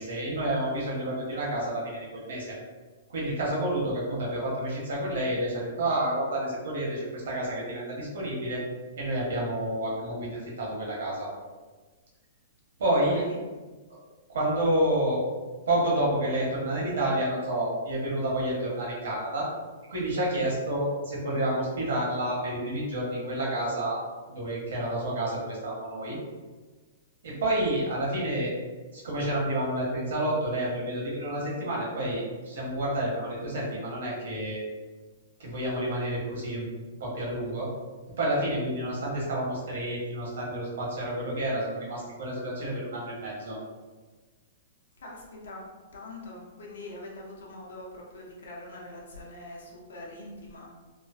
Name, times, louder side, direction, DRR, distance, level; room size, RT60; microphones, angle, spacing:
voice 1, 0.0-2.6 3.1-8.6 9.0-11.3 12.8-13.2 14.3-15.2 15.7-19.5 19.9-24.0 24.3-26.2 27.2-28.5 28.9-34.6 35.4-36.7 37.0-37.7 38.2-43.6, right 1 dB, 80° right, -4 dB, 1.2 m, -29 dB
voice 2, 45.0-50.7, left 2 dB, 85° left, -3 dB, 0.7 m, -43 dB
3.0 x 2.0 x 2.6 m, 1.3 s
hypercardioid pair, 160°, 0 cm